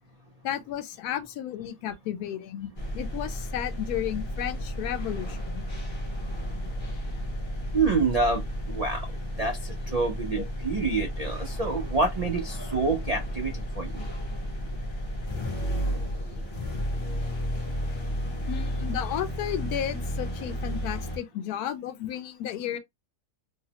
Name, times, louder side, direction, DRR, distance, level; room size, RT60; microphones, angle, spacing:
voice 1, 0.4-5.6 10.4-10.5 18.5-22.8, left 11 dB, 80° left, 1.1 m, -33 dB
sound 1, 2.8-21.2, equal, 30° left, 0.5 m, -33 dB
voice 2, 7.7-9.1 9.4-14.1, right 3 dB, 75° right, 0.3 m, -27 dB
3.1 x 2.0 x 2.8 m
omnidirectional pair, 1.6 m